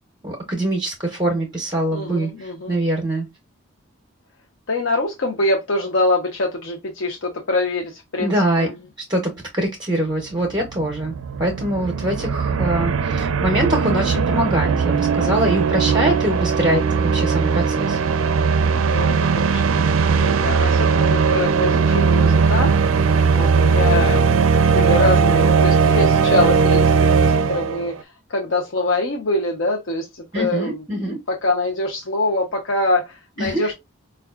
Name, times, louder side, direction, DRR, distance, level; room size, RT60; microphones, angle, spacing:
voice 1, 0.2-3.3 8.2-8.7 9.1-18.0 20.6-20.7 30.3-31.2 33.4-33.7, right 1 dB, 20° right, 0.6 m, -23 dB
voice 2, 1.9-2.8 4.7-8.3 8.6-8.7 18.8-19.6 20.1-22.7 23.3-28.0 28.3-33.7, left 2 dB, 65° left, 0.6 m, -24 dB
sound 1, 10.2-10.3 10.5-27.9, right 5 dB, 75° right, 0.4 m, -18 dB
4.5 x 2.3 x 2.3 m
head